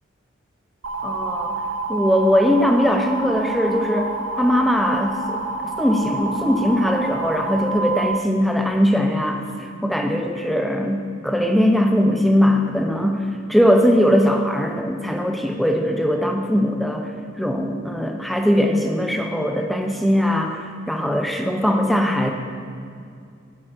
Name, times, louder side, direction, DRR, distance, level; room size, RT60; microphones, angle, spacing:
sound 1, 0.8-8.2, right 3 dB, 75° right, 0.6 m, -28 dB
voice 1, 1.0-1.6 1.9-4.1 4.4-5.4 5.8-17.1 17.4-22.3, equal, ahead, 3 dB, 0.4 m, -20 dB
6.5 x 4.5 x 5.8 m, 2.4 s
head